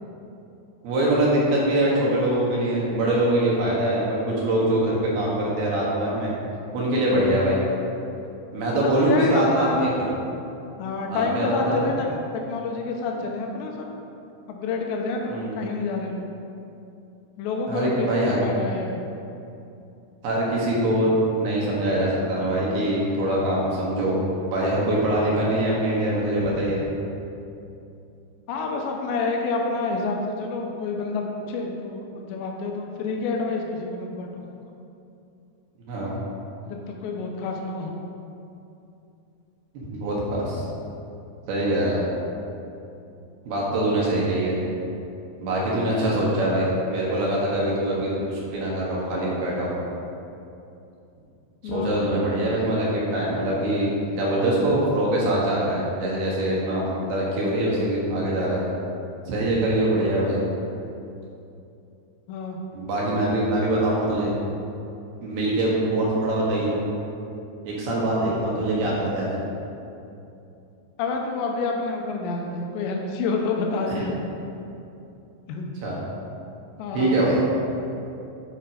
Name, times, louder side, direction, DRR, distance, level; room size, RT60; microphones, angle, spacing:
voice 1, 0.8-6.3 6.7-7.6 8.5-10.1 11.1-11.8 15.3-15.5 17.7-18.5 20.2-24.2 24.5-26.8 35.9-36.2 39.7-40.6 41.5-42.0 43.5-44.6 45.4-49.7 51.6-53.9 54.2-58.6 59.3-60.4 62.7-64.3 65.2-66.8 67.6-69.3 73.8-74.0 75.8-76.0 76.9-77.4, right 1 dB, 65° right, -5 dB, 3.1 m, -23 dB
voice 2, 8.7-9.9 10.8-13.9 14.5-16.3 17.4-19.0 28.5-34.4 36.7-37.9 51.6-52.1 62.3-62.6 71.0-74.2 75.5-75.6 76.8-77.2, left 3 dB, 80° left, 1 dB, 2.7 m, -28 dB
8.9 x 5.4 x 5.0 m, 2.7 s
omnidirectional pair, 5.3 m